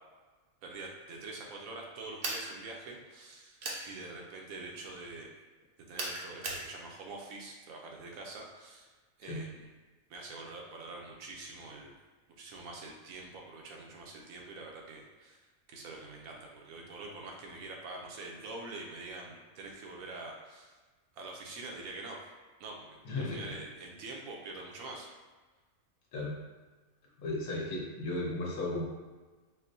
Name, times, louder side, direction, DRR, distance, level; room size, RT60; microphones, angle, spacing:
voice 1, 0.6-5.3 5.9-8.9 9.2-9.7 10.1-11.9 12.4-15.4 15.7-20.7 21.1-22.2 22.6-25.1, right 3 dB, 80° right, 0 dB, 1.0 m, -45 dB
sound 1, 2.2-2.5 3.6-3.9 6.0-6.7, right 2 dB, 55° right, 0.6 m, -36 dB
voice 2, 23.0-23.4 26.1-26.3 27.2-28.8, left 2 dB, 80° left, -3 dB, 1.2 m, -35 dB
4.3 x 2.1 x 2.6 m, 1.3 s
omnidirectional pair, 1.5 m